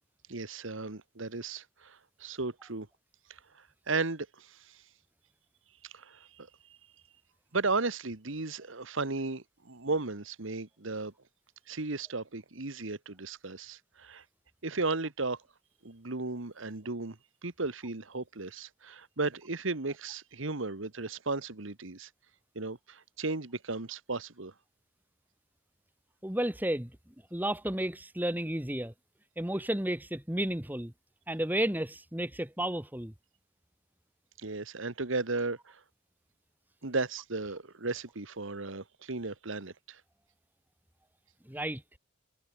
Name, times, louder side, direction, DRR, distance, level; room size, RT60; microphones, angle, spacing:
voice 1, 0.3-2.9 3.3-4.8 5.8-6.5 7.5-11.1 11.7-14.2 14.6-15.4 15.8-17.2 17.4-22.1 22.5-24.5 34.4-35.8 36.8-40.0, right 3 dB, 70° right, 1.6 m, -35 dB
voice 2, 26.2-26.9 27.3-28.9 29.4-30.9 31.3-33.1 41.4-41.8, right 1 dB, 10° right, 1.5 m, -32 dB
head